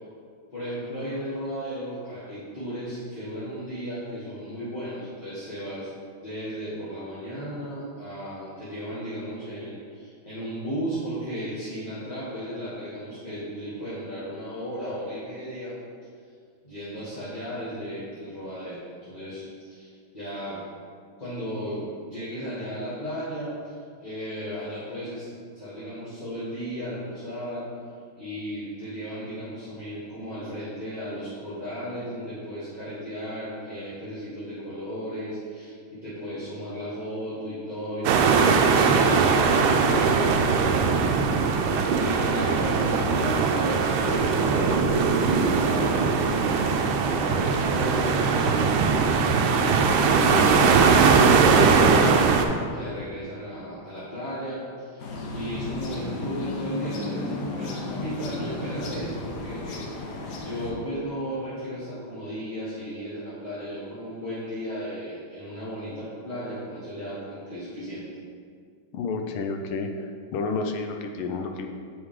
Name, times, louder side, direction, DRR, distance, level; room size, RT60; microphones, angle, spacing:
voice 1, 0.5-5.9 6.2-15.8 16.6-20.6 21.2-25.3 25.5-27.7 28.1-40.9 41.9-48.7 49.5-51.1 51.6-52.3 52.7-60.1 60.4-68.0, equal, 20° left, -12 dB, 1.4 m, -35 dB
sound 1, 38.0-52.4, right 5 dB, 75° right, 1.3 m, -20 dB
sound 2, 55.0-60.7, left 2 dB, 60° left, 1.2 m, -34 dB
voice 2, 68.9-69.9 70.3-71.7, left 4 dB, 80° left, 5 dB, 1.4 m, -30 dB
8.0 x 4.8 x 3.7 m, 2.2 s
omnidirectional pair, 2.3 m